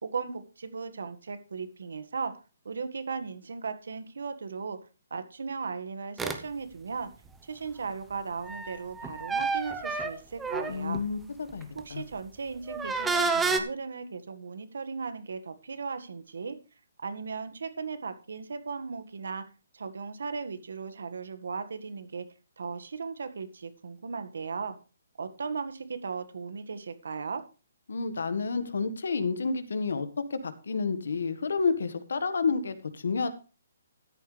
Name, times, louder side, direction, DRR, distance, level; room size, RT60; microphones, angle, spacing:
voice 1, 0.0-2.4 2.7-4.8 5.1-7.1 7.4-11.0 11.8-16.6 17.0-19.5 19.7-22.3 22.6-24.8 25.2-27.4, right 5 dB, 75° right, 10 dB, 1.7 m, -37 dB
sound 1, 6.2-6.4 8.4-11.0 11.6-11.8 12.7-13.6, right 4 dB, 5° right, 0.8 m, -29 dB
voice 2, 10.7-12.0 27.9-33.3, left 4 dB, 75° left, 12 dB, 1.6 m, -30 dB
13.5 x 10.5 x 3.3 m, 0.33 s
hypercardioid pair, 170°, 0 cm